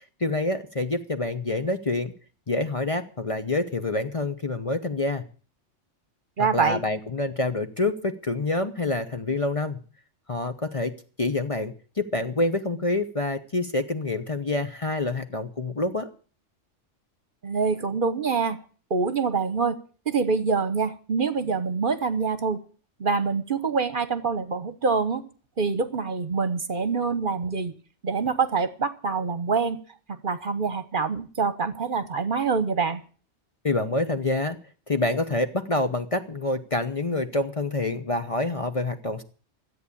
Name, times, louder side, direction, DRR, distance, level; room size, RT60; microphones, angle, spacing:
voice 1, 0.0-2.1 2.5-5.2 6.4-9.8 10.3-10.9 11.2-16.1 33.6-34.6 34.9-39.2, left 2 dB, 30° left, 7 dB, 0.8 m, -27 dB
voice 2, 6.4-6.8 17.4-18.6 18.9-19.7 20.1-22.6 23.0-25.2 25.6-27.7 28.0-29.8 30.1-33.0, right 5 dB, 50° right, 12 dB, 1.1 m, -25 dB
13.5 x 8.3 x 8.4 m, 0.41 s
omnidirectional pair, 1.2 m